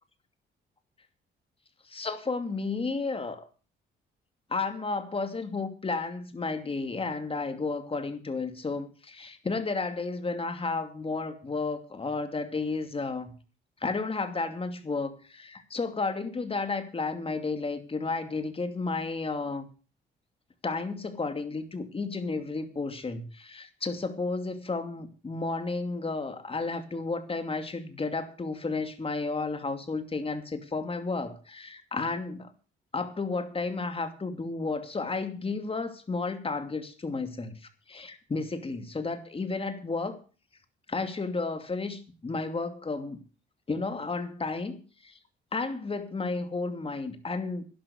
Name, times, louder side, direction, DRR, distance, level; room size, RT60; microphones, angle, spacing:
voice 1, 1.9-3.5 4.5-13.3 13.8-19.7 20.6-32.5 32.9-37.5 37.9-40.2 40.9-43.2 43.7-45.2 45.5-47.6, left 3 dB, 30° left, 2.7 m, -32 dB
11.5 x 11.5 x 6.4 m
cardioid pair, 90°, 20 cm